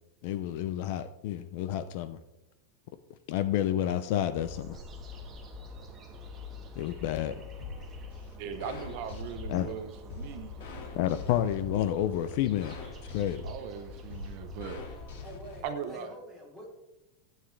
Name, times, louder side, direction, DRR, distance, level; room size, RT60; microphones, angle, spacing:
voice 1, 0.2-2.2 3.3-4.8 6.8-7.4 9.5-9.7 10.9-12.8 13.1-13.5, left 11 dB, 45° left, 12 dB, 0.5 m, -30 dB
sound 1, 4.4-15.3, left 3 dB, 15° right, 1.4 m, -46 dB
sound 2, 7.6-15.6, left 3 dB, 80° left, 2.0 m, -44 dB
voice 2, 8.4-10.5 13.4-14.8 15.6-16.1, right 7 dB, 40° right, 7 dB, 0.8 m, -39 dB
voice 3, 15.2-16.7, right 1 dB, 5° left, -4 dB, 3.3 m, -46 dB
14.5 x 9.1 x 3.3 m, 0.96 s
supercardioid pair, 175°, 0 cm